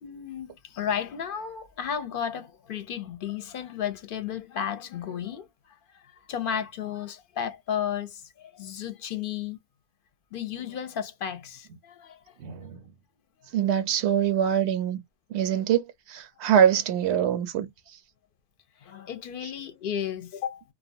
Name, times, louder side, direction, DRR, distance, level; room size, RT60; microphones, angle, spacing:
voice 1, 0.0-5.5 5.9-9.6 10.3-12.3 18.8-20.6, left 8 dB, 65° left, 0.7 m, -33 dB
voice 2, 12.4-12.8 13.5-15.0 15.3-17.7, right 9 dB, 85° right, 0.8 m, -24 dB
2.3 x 2.2 x 2.5 m
omnidirectional pair, 1.1 m